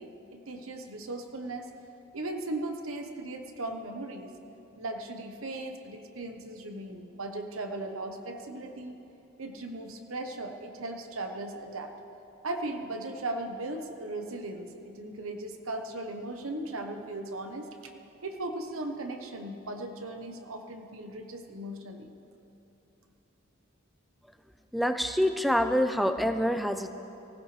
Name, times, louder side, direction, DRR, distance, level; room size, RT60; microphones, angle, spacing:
voice 1, 0.0-1.7 2.1-4.3 4.8-9.0 9.4-11.9 12.4-17.9 18.2-22.1, right 2 dB, 85° right, 4 dB, 1.1 m, -37 dB
voice 2, 24.7-26.9, equal, ahead, 8 dB, 0.5 m, -26 dB
24.0 x 16.0 x 3.3 m, 2.9 s
head